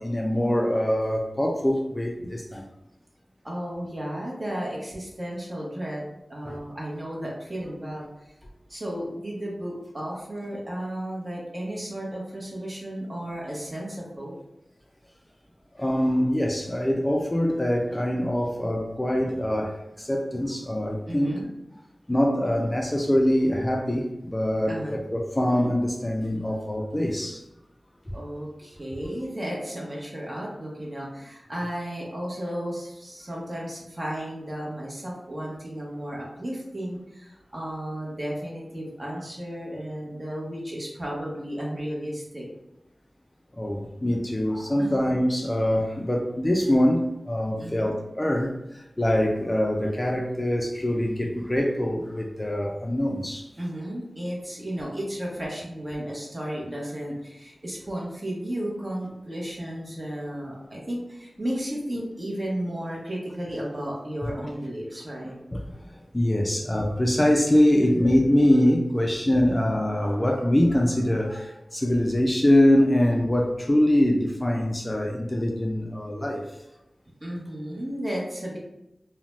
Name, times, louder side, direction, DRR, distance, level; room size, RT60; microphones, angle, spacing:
voice 1, 0.0-2.7 6.4-6.6 15.7-21.5 22.1-27.4 28.1-28.2 43.5-53.5 64.2-64.3 65.2-76.5, left 1 dB, 20° left, 0 dB, 0.3 m, -24 dB
voice 2, 3.4-6.0 6.3-8.1 8.7-14.3 21.1-21.4 24.7-25.0 28.1-42.5 44.8-44.9 47.6-47.9 53.6-65.3 77.2-78.6, equal, 35° right, -4 dB, 0.8 m, -33 dB
2.5 x 2.1 x 3.1 m, 0.89 s
wide cardioid pair, 80°, 0 cm